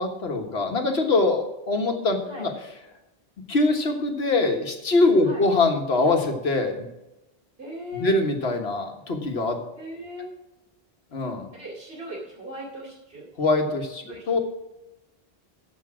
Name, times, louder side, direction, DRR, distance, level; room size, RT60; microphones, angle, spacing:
voice 1, 0.0-2.5 3.5-6.9 8.0-9.6 11.1-11.5 13.4-14.4, left 2 dB, 85° left, 4 dB, 1.6 m, -23 dB
voice 2, 7.6-8.2 9.7-10.3 11.5-13.3 14.0-14.4, equal, 70° right, -7 dB, 3.1 m, -38 dB
13.5 x 5.3 x 6.2 m, 0.96 s
omnidirectional pair, 1.0 m